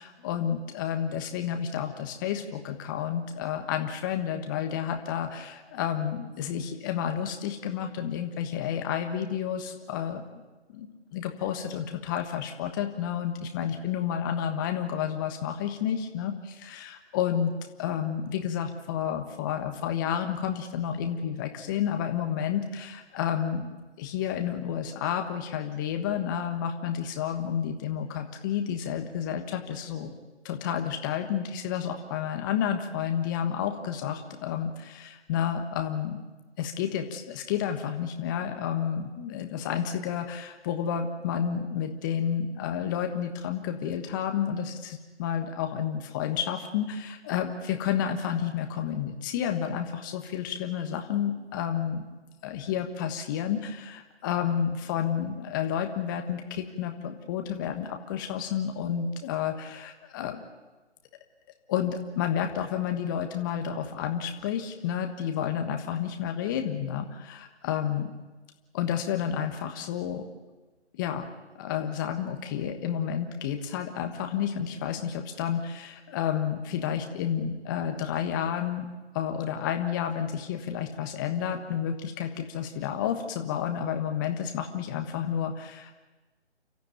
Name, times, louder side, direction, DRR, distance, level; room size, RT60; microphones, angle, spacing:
voice 1, 0.0-10.2 10.7-17.5 17.8-23.7 24.0-30.2 30.4-36.2 36.6-52.1 52.4-60.4 61.7-68.1 68.7-70.3 70.9-71.3 71.5-78.9 79.1-86.0, left 9 dB, 15° left, 5 dB, 1.3 m, -30 dB
29.5 x 13.5 x 9.2 m, 1.2 s
figure-of-eight pair, 150°, 35 cm